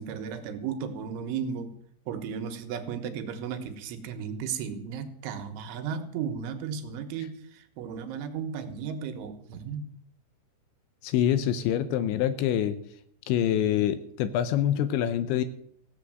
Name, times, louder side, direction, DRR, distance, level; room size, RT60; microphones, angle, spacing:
voice 1, 0.0-1.7 2.1-9.9, right 7 dB, 80° right, 7 dB, 3.5 m, -35 dB
voice 2, 11.0-12.7 13.3-15.4, left 10 dB, 80° left, 12 dB, 2.9 m, -25 dB
16.5 x 8.2 x 7.7 m, 0.68 s
omnidirectional pair, 5.7 m